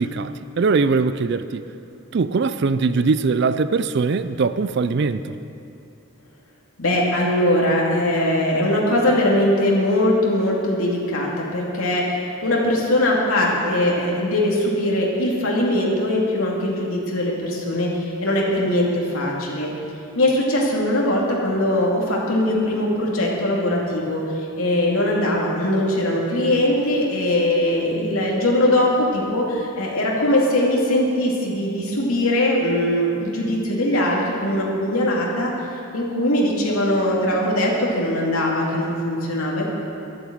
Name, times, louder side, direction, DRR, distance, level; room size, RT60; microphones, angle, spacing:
voice 1, 0.0-1.6 2.1-5.4, right 4 dB, 50° right, 12 dB, 0.4 m, -21 dB
voice 2, 6.8-17.9 18.2-19.7 20.2-24.2 24.6-35.5 35.9-39.8, left 1 dB, 80° left, -3 dB, 2.4 m, -21 dB
11.5 x 8.6 x 7.9 m, 2.7 s
head